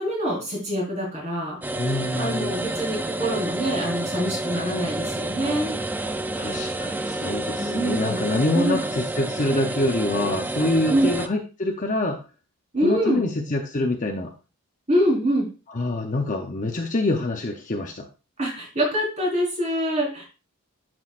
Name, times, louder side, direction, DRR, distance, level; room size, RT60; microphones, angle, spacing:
voice 1, 0.0-1.6 2.1-5.7 7.6-8.2 8.5-8.8 10.9-11.1 12.7-13.3 14.9-15.5 18.4-20.2, equal, 30° right, -3 dB, 4.6 m, -25 dB
sound 1, 1.6-11.3, right 2 dB, 10° right, 0.3 m, -29 dB
voice 2, 1.8-2.6 6.3-12.2 12.8-14.3 15.7-18.1, left 2 dB, 35° left, 3 dB, 0.8 m, -25 dB
11.5 x 6.2 x 2.5 m, 0.31 s
head